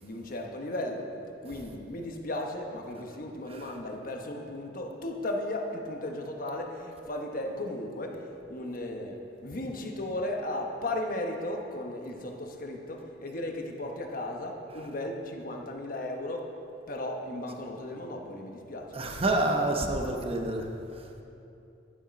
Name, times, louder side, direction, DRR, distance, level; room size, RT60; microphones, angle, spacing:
voice 1, 0.0-1.1 1.4-8.2 8.5-16.5 16.9-18.9, left 1 dB, 50° left, 2 dB, 1.1 m, -35 dB
voice 2, 18.9-20.7, right 2 dB, 35° right, 3 dB, 0.9 m, -28 dB
11.0 x 7.4 x 5.2 m, 2.7 s
head